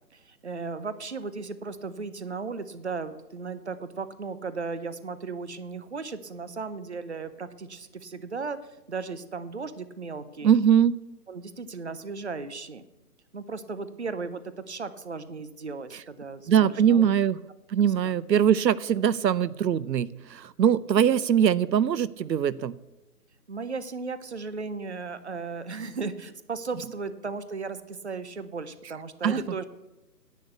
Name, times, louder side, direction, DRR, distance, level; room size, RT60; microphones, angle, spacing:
voice 1, 0.1-10.5 11.3-12.8 13.3-17.1 18.0-18.2 23.5-29.6, right 4 dB, 45° right, 13 dB, 0.8 m, -36 dB
voice 2, 10.4-10.9 16.5-17.4 17.7-22.8 29.2-29.3, right 8 dB, 85° right, 20 dB, 0.7 m, -22 dB
10.5 x 8.5 x 8.0 m, 1.0 s
hypercardioid pair, 175°, 49 cm